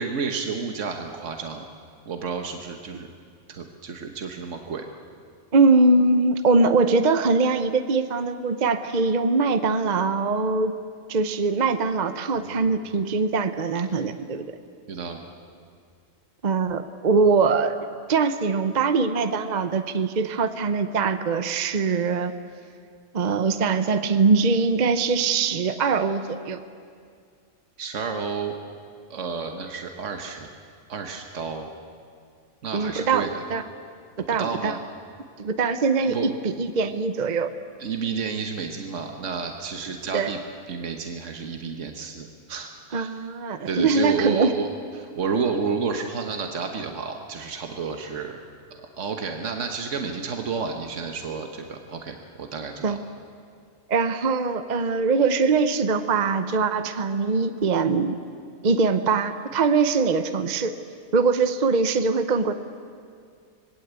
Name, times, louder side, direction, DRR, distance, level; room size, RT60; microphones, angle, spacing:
voice 1, 0.0-1.6 2.0-3.1 3.5-4.8 12.3-12.6 14.9-15.2 27.8-28.5 29.1-30.5 30.9-31.7 32.6-33.4 34.2-34.8 36.0-36.3 37.8-40.4 40.7-43.1 43.6-44.7 44.9-48.4 48.8-53.0, right 5 dB, 75° right, 4 dB, 1.6 m, -31 dB
voice 2, 5.5-10.7 11.1-14.5 16.4-17.8 18.1-22.3 23.1-26.6 32.7-33.6 34.3-34.8 35.4-36.2 36.4-37.5 39.9-40.3 42.9-44.5 52.8-53.0 53.9-58.2 58.6-60.7 61.1-62.5, right 4 dB, 40° right, 10 dB, 0.9 m, -22 dB
26.0 x 20.0 x 8.2 m, 2.2 s
omnidirectional pair, 1.3 m